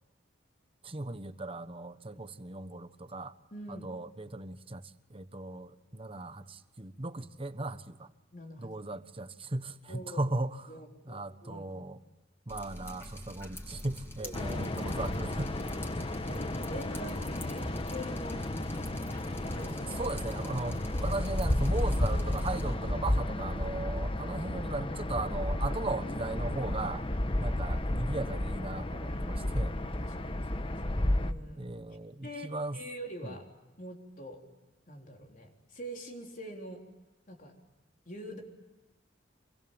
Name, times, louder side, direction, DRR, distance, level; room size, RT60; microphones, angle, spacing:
voice 1, 0.8-3.3 3.7-8.1 8.6-10.7 11.0-12.0 12.5-15.6 20.0-27.0 27.4-29.7 31.6-32.8 33.2-33.3, right 2 dB, 30° right, 1.2 m, -37 dB
voice 2, 3.5-3.9 8.3-8.7 9.9-10.2 10.7-11.6 14.2-14.3 16.2-18.5 19.5-20.1 20.9-21.0 27.2-27.6 29.1-31.7 32.2-33.5 33.8-34.4 34.9-36.8 37.3-37.6 38.1-38.4, equal, 45° left, 3.9 m, -45 dB
Drip, 12.5-22.7, equal, 15° left, 6.6 m, -47 dB
sound 1, 14.3-31.3, left 1 dB, 30° left, 1.1 m, -32 dB
27.0 x 24.0 x 9.0 m
head